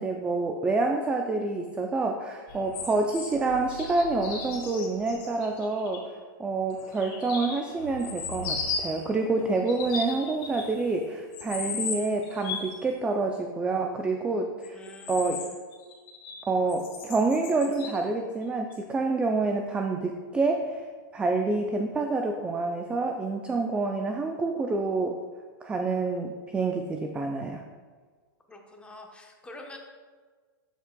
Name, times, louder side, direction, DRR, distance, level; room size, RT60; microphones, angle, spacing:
voice 1, 0.0-6.0 6.4-14.8 15.1-15.4 16.5-20.9 21.1-25.2 25.6-27.6, right 3 dB, 10° right, 4 dB, 0.3 m, -27 dB
sound 1, 2.5-6.0 6.7-9.0 9.6-10.9 11.3-12.8 14.6-16.4 16.7-18.0 18.7-18.8, left 4 dB, 40° left, 1.7 m, -37 dB
voice 2, 14.7-15.6 28.5-29.8, left 1 dB, 10° left, 2 dB, 0.9 m, -46 dB
13.0 x 4.6 x 2.2 m, 1.5 s
hypercardioid pair, 135°, 12 cm